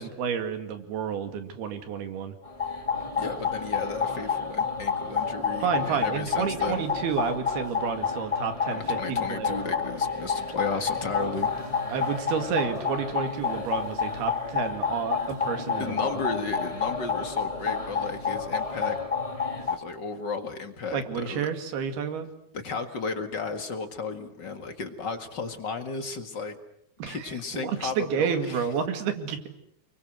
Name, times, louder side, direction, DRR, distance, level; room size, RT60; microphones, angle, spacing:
voice 1, 0.0-2.3 5.6-9.6 11.9-16.2 20.9-22.3 27.0-27.3 27.6-29.5, right 7 dB, 80° right, 8 dB, 4.2 m, -30 dB
sound 1, 2.4-19.8, left 5 dB, 20° left, 0.9 m, -29 dB
voice 2, 3.2-6.8 8.7-11.5 15.8-19.0 19.7-21.5 22.5-26.6 27.1-28.7, left 4 dB, 40° left, 7 dB, 1.6 m, -34 dB
29.5 x 23.0 x 7.9 m, 0.72 s
omnidirectional pair, 4.5 m